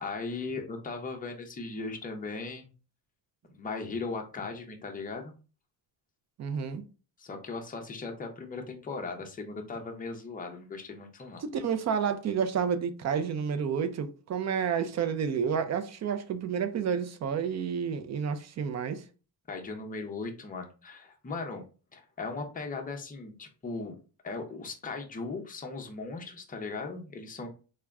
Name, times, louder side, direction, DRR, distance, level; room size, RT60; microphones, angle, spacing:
voice 1, 0.0-2.7 3.5-5.3 7.2-11.4 19.5-21.7 21.9-24.0 24.2-27.5, left 3 dB, 20° left, 0.5 m, -38 dB
voice 2, 6.4-6.9 11.4-19.0, right 7 dB, 40° right, 0.4 m, -30 dB
3.5 x 2.1 x 3.4 m
cardioid pair, 150°, 43 cm